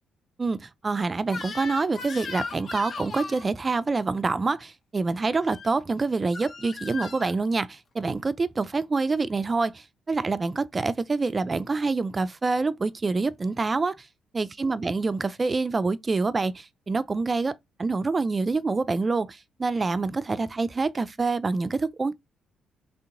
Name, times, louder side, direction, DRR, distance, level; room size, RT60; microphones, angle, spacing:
voice 1, 0.4-14.1 14.3-17.5 17.8-22.1, right 3 dB, 30° right, 0.4 m, -26 dB
Crying sobbing / Screech, 1.3-3.5 5.4-5.7 6.3-7.3, left 4 dB, 45° left, 1.1 m, -37 dB
3.4 x 2.8 x 3.8 m
cardioid pair, 90°, 0 cm